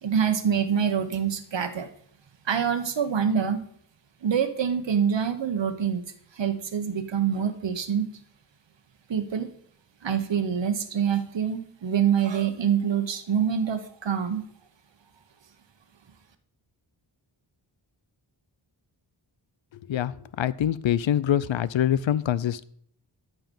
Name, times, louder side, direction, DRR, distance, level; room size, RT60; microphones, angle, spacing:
voice 1, 0.0-1.9 2.4-3.6 4.2-6.0 6.3-8.1 9.1-9.5 10.0-14.5, right 7 dB, 70° right, 9 dB, 1.1 m, -25 dB
voice 2, 20.4-22.6, left 10 dB, 80° left, 17 dB, 0.6 m, -24 dB
13.5 x 5.8 x 5.4 m, 0.63 s
wide cardioid pair, 120°, 46 cm